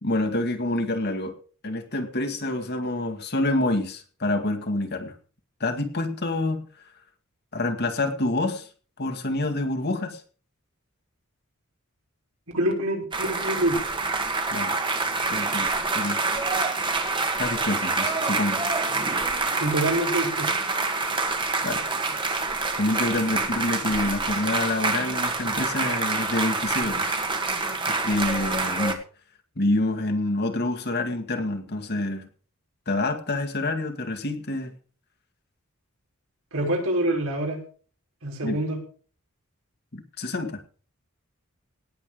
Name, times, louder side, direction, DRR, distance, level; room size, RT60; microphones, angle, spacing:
voice 1, 0.0-1.4 1.6-5.1 5.6-6.6 7.5-8.7 9.0-10.2 14.5-14.8 15.3-15.7 15.9-16.2 17.4-18.7 21.6-21.8 22.8-27.2 27.9-29.0 29.6-32.3 32.9-34.7 38.4-38.6 39.9-40.6, left 2 dB, 50° left, 6 dB, 2.0 m, -27 dB
voice 2, 12.5-13.7 19.6-20.5 36.5-37.6 38.2-38.8, right 1 dB, 75° right, 0 dB, 5.9 m, -26 dB
sound 1, 13.1-28.9, right 3 dB, 25° right, 1.9 m, -26 dB
18.5 x 8.1 x 5.1 m, 0.41 s
head